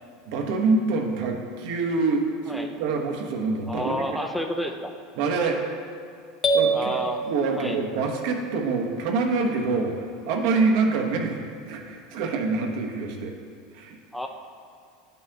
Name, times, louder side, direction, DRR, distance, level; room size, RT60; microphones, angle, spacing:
voice 1, 0.3-4.0 5.2-5.6 6.5-13.3 13.7-14.0, right 3 dB, 70° right, 2 dB, 1.0 m, -26 dB
voice 2, 3.7-4.9 6.7-7.3 7.6-7.8 14.1-14.3, equal, 5° left, 3 dB, 0.5 m, -30 dB
sound 1, 6.4-8.3, right 2 dB, 35° left, 0.9 m, -26 dB
10.0 x 5.4 x 2.8 m, 2.3 s
supercardioid pair, 105°, 0 cm